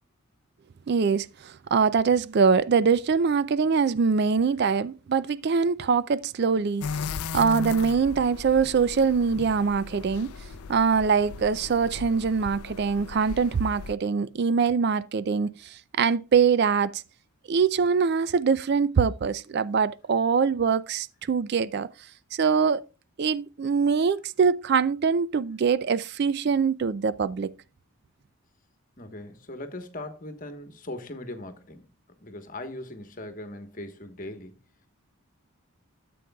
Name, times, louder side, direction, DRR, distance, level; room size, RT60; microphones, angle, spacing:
voice 1, 0.9-6.9 7.3-10.3 10.7-17.0 17.5-21.9 22.3-22.8 23.2-27.5, right 5 dB, 45° right, 0.3 m, -23 dB
sound 1, 6.8-14.0, left 5 dB, 80° left, 0.4 m, -37 dB
voice 2, 29.0-31.9 32.2-34.5, left 1 dB, 35° left, 1.2 m, -39 dB
13.0 x 7.7 x 2.3 m
head